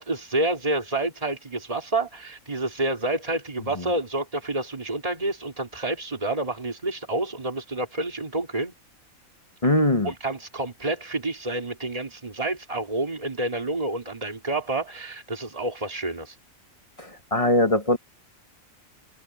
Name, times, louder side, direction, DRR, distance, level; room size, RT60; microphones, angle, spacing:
voice 1, 0.0-8.7 10.0-16.3, right 2 dB, 25° right, 3.1 m, -29 dB
voice 2, 9.6-10.1 17.0-18.0, left 1 dB, 25° left, 1.5 m, -21 dB
omnidirectional pair, 1.4 m